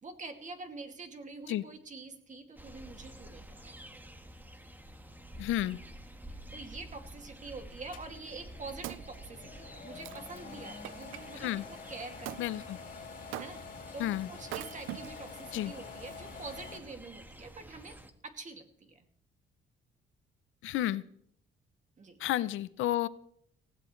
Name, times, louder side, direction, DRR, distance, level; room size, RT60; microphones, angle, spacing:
voice 1, 0.0-3.8 6.3-12.6 13.4-13.6 13.9-18.0 18.2-19.1 22.0-22.2, right 3 dB, 40° right, 5 dB, 2.4 m, -46 dB
sound 1, 2.6-18.1, right 1 dB, 10° right, 1.6 m, -50 dB
voice 2, 5.4-5.8 11.4-11.6 12.4-12.8 14.0-14.3 15.5-15.7 20.6-21.0 22.2-23.1, left 13 dB, 85° left, 16 dB, 0.7 m, -31 dB
sound 2, 7.9-16.8, left 5 dB, 45° left, 3.8 m, -47 dB
Wood, 8.4-11.2 12.3-12.5 13.3-13.8 14.4-15.4 16.1-16.2, right 15 dB, 85° right, 0.5 m, -43 dB
19.5 x 16.0 x 3.2 m, 0.67 s
cardioid pair, 90°, 20 cm